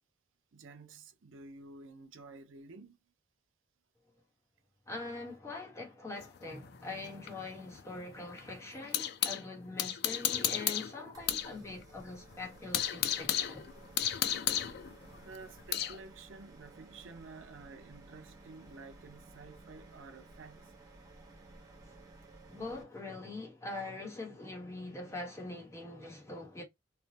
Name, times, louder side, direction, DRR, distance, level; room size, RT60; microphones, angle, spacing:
voice 1, 0.5-3.0 10.4-10.6 13.9-14.3 15.0-20.7, right 3 dB, 75° right, 0.6 m, -52 dB
voice 2, 4.9-13.7 22.5-26.6, left 2 dB, 15° left, 1.0 m, -43 dB
sound 1, 6.2-9.4 9.8-11.5 11.8-11.9 12.3-16.0, left 11 dB, 55° left, 0.3 m, -34 dB
sound 2, 11.1-22.8, right 2 dB, 20° right, 0.9 m, -55 dB
3.2 x 2.1 x 2.7 m
head